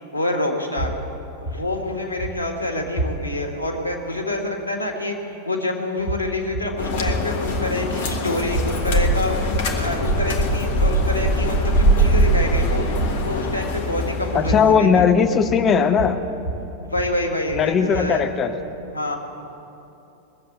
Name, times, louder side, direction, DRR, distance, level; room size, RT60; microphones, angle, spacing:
voice 1, 0.1-0.9 1.4-5.1 5.4-9.4 9.7-12.9 13.2-15.0 16.8-18.2 18.9-19.2, left 1 dB, 90° right, 2 dB, 1.7 m, -27 dB
sound 1, 0.8-3.6 6.0-18.3, right 1 dB, 85° left, 2.0 m, -31 dB
sound 2, 6.8-14.7, right 1 dB, 55° left, 1.5 m, -22 dB
voice 2, 14.3-16.2 17.5-18.5, left 6 dB, 25° left, 7 dB, 0.9 m, -18 dB
20.0 x 7.4 x 8.4 m, 2.9 s
figure-of-eight pair, 90°, 0 cm